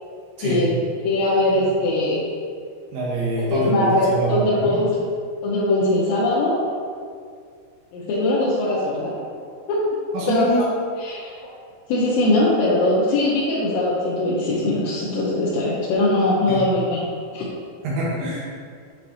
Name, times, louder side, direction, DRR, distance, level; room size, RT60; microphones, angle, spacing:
voice 1, 0.4-0.7 1.0-2.2 3.5-4.9 5.4-6.6 7.9-9.1 9.7-9.8 10.3-10.7 11.0-11.2 11.9-17.1 17.3-17.5, left 2 dB, 80° left, -8 dB, 2.8 m, -21 dB
voice 2, 2.9-4.8 10.1-10.6 16.5-16.6 17.8-18.4, right 2 dB, 75° right, -6 dB, 3.4 m, -25 dB
9.5 x 4.7 x 2.8 m, 2.2 s
omnidirectional pair, 5.9 m